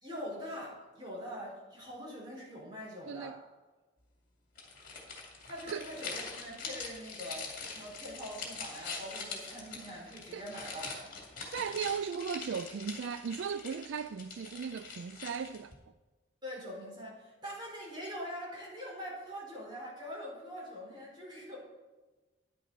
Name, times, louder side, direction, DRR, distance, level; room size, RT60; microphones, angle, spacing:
voice 1, 0.0-3.4 5.4-11.1 16.4-21.6, equal, 25° right, 4.1 m, -43 dB
voice 2, 3.1-3.4 5.7-5.9 10.3-10.5 11.4-15.7, right 6 dB, 70° right, 0.3 m, -37 dB
sound 1, 4.5-15.7, left 4 dB, 45° left, 2.3 m, -44 dB
10.5 x 10.0 x 4.0 m
head